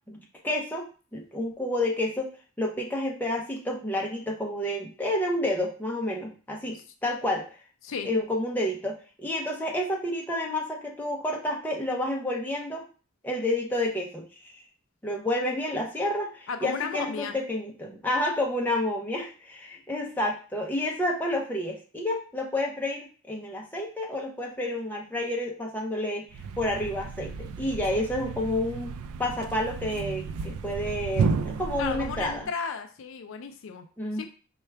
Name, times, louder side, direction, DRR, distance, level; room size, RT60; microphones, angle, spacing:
voice 1, 0.1-2.3 2.6-6.8 7.0-7.5 8.0-12.8 13.2-14.2 14.5-14.6 15.0-23.0 23.3-26.2 26.6-28.9 29.2-32.5 34.0-34.3, left 1 dB, 10° left, -1 dB, 0.6 m, -29 dB
voice 2, 16.5-17.3 31.8-33.9 34.1-34.3, left 5 dB, 65° left, 6 dB, 0.4 m, -34 dB
Thump thud, 26.3-32.5, right 5 dB, 90° right, 0.3 m, -32 dB
4.4 x 2.3 x 3.3 m, 0.37 s
head